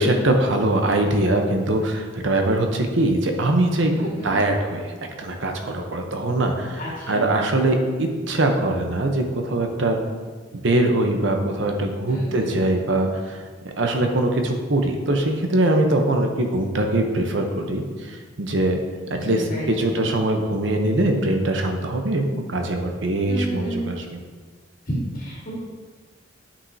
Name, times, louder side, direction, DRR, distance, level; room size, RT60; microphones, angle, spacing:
voice 1, 0.0-3.9 4.2-6.8 7.1-10.0 10.6-13.4 13.8-18.8 19.1-24.2, right 1 dB, 70° right, 4 dB, 0.8 m, -22 dB
voice 2, 3.9-4.3 6.8-7.2 12.1-12.5 19.1-19.2 19.5-20.0 23.3-23.8 24.9-25.5, right 1 dB, 40° left, -6 dB, 1.9 m, -31 dB
8.6 x 5.5 x 2.7 m, 1.4 s
head